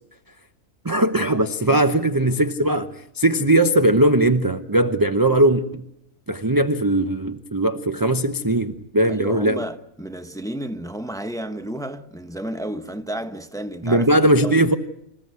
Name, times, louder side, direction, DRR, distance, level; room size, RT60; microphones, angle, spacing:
voice 1, 0.8-5.8 6.3-9.6 13.8-14.7, right 1 dB, 20° right, 0.7 m, -19 dB
voice 2, 9.1-14.6, right 1 dB, 5° left, 1.0 m, -32 dB
27.0 x 15.5 x 9.5 m
omnidirectional pair, 1.5 m